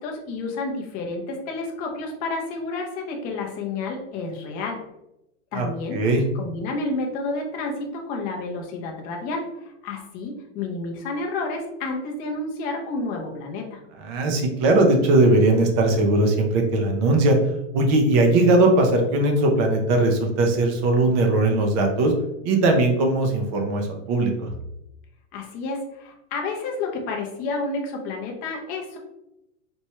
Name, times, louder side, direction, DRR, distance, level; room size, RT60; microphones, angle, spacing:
voice 1, 0.0-4.8 5.5-6.0 6.3-13.8 25.3-29.0, left 3 dB, 25° left, 1 dB, 0.6 m, -30 dB
voice 2, 14.0-17.4 17.7-22.1 22.4-24.5, right 2 dB, 25° right, 3 dB, 0.4 m, -19 dB
4.3 x 2.2 x 3.0 m, 0.88 s
supercardioid pair, 150°, 38 cm